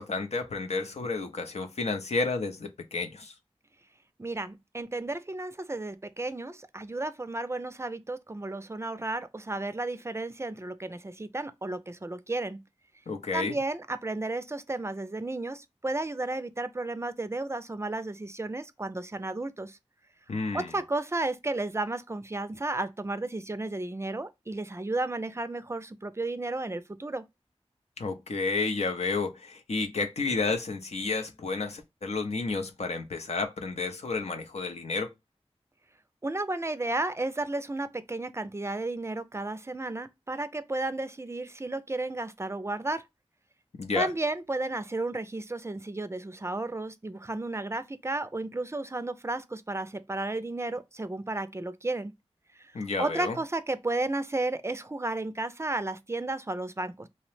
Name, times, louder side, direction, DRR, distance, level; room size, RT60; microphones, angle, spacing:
voice 1, 0.0-3.3 13.1-13.6 20.3-20.7 28.0-35.1 43.7-44.1 52.7-53.4, left 3 dB, 85° left, 0.5 m, -31 dB
voice 2, 4.2-12.6 13.3-19.8 20.5-27.2 36.2-43.0 44.0-52.1 52.6-52.7 53.0-57.1, right 2 dB, 25° right, 0.3 m, -33 dB
2.8 x 2.0 x 3.1 m
wide cardioid pair, 70°, 11 cm